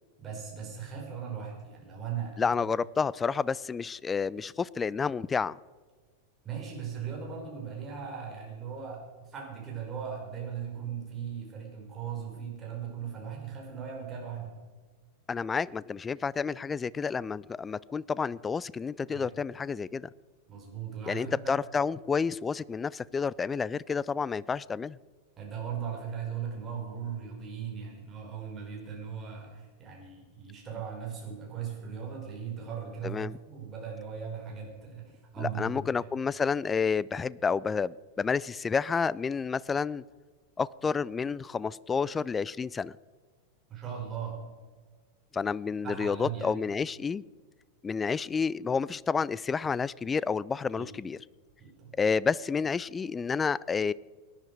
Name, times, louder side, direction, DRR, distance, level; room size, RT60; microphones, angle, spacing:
voice 1, 0.2-2.4 6.4-14.6 19.1-19.3 20.5-21.5 25.4-35.8 43.7-44.4 45.8-46.5 50.7-50.9 51.6-52.0, right 7 dB, 25° right, -1 dB, 5.0 m, -38 dB
voice 2, 2.4-5.6 15.3-20.1 21.1-25.0 33.0-33.4 35.4-40.0 40.6-42.9 45.3-47.2 47.8-51.2 52.0-53.9, left 5 dB, 15° left, 22 dB, 0.3 m, -30 dB
18.5 x 10.5 x 4.8 m, 1.5 s
figure-of-eight pair, 90°, 0 cm